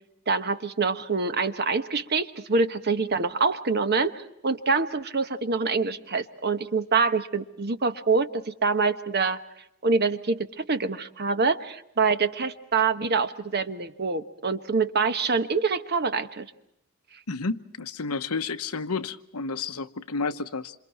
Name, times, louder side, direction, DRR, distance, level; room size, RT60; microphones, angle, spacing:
voice 1, 0.3-9.4 9.8-16.5, right 4 dB, 45° right, 1.2 m, -25 dB
voice 2, 17.3-20.7, left 4 dB, 85° left, 1.0 m, -31 dB
27.5 x 27.0 x 4.3 m
head